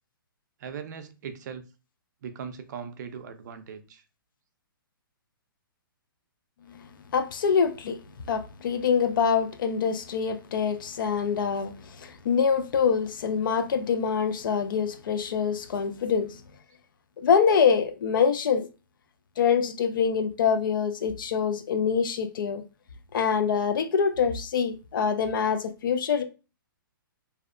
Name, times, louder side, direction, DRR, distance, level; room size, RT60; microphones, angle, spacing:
voice 1, 0.6-1.6 2.2-4.0, right 7 dB, 50° right, 0.4 m, -39 dB
voice 2, 7.1-8.0 8.3-16.4 17.2-18.7 19.4-22.6 23.1-26.2, left 6 dB, 65° left, 0.4 m, -25 dB
2.6 x 2.0 x 2.5 m
hypercardioid pair, 145°, 12 cm